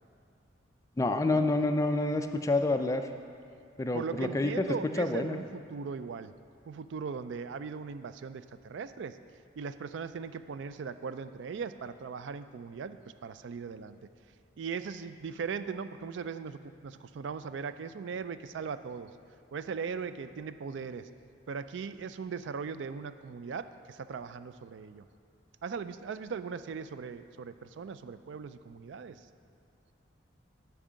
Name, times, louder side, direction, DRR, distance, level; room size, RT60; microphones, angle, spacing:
voice 1, 1.0-3.1 3.8-4.7 5.0-5.4, left 2 dB, 15° left, 6 dB, 0.3 m, -28 dB
voice 2, 3.9-6.3 6.7-9.2 9.6-14.1 14.6-19.1 19.5-21.1 21.5-25.1 25.6-29.2, right 5 dB, 75° right, 12 dB, 0.3 m, -39 dB
8.8 x 4.7 x 7.4 m, 2.5 s
head